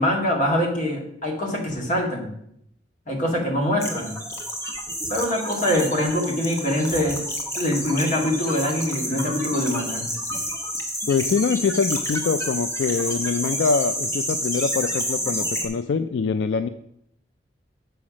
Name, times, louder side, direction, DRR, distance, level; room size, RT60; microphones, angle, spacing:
voice 1, 0.0-2.3 3.1-4.1 5.1-7.2 7.6-10.0, left 1 dB, 45° left, 0 dB, 2.1 m, -24 dB
sound 1, 3.8-15.7, equal, 15° left, 1.3 m, -29 dB
voice 2, 11.1-16.7, left 5 dB, 75° left, 11 dB, 0.4 m, -24 dB
6.9 x 5.8 x 6.2 m, 0.74 s
head